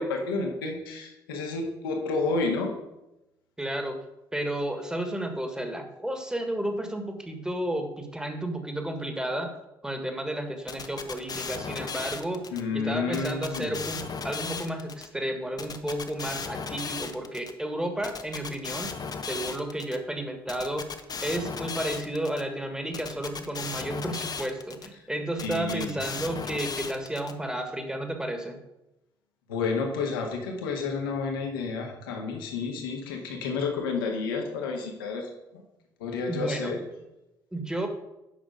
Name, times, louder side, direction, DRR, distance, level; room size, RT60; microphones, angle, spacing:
voice 1, 0.0-2.7 12.5-13.8 25.4-26.0 29.5-35.3 36.0-36.8, left 4 dB, 70° left, 2 dB, 1.7 m, -30 dB
voice 2, 3.6-4.0 4.3-9.5 9.8-12.4 12.7-18.9 19.3-20.9 21.2-28.6 36.3-36.7 37.5-37.9, right 1 dB, 5° right, 5 dB, 1.7 m, -32 dB
sound 1, 10.7-12.6 13.1-15.1 15.6-17.5 18.0-20.0 20.5-22.4 22.9-24.9 25.4-27.3, left 5 dB, 35° left, 0.9 m, -36 dB
9.1 x 6.2 x 5.1 m, 0.92 s
figure-of-eight pair, 45°, 12 cm